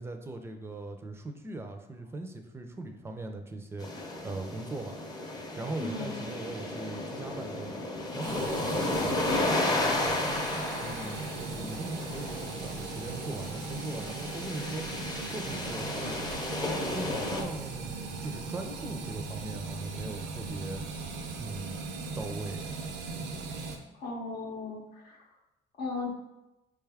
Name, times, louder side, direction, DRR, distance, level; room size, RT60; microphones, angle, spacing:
voice 1, 0.0-5.0 5.4-7.8 8.1-10.4 10.8-14.9 15.3-16.2 16.9-20.8 21.4-22.8, right 2 dB, 15° right, 4 dB, 0.4 m, -40 dB
sound 1, 3.8-17.4, left 2 dB, 25° left, 0.6 m, -33 dB
voice 2, 5.8-6.3 24.0-25.2 25.8-26.1, left 3 dB, 65° left, -1 dB, 0.7 m, -36 dB
sound 2, 8.2-23.8, right 4 dB, 85° right, 0.6 m, -39 dB
5.0 x 2.3 x 3.4 m, 0.99 s
cardioid pair, 110°, 17 cm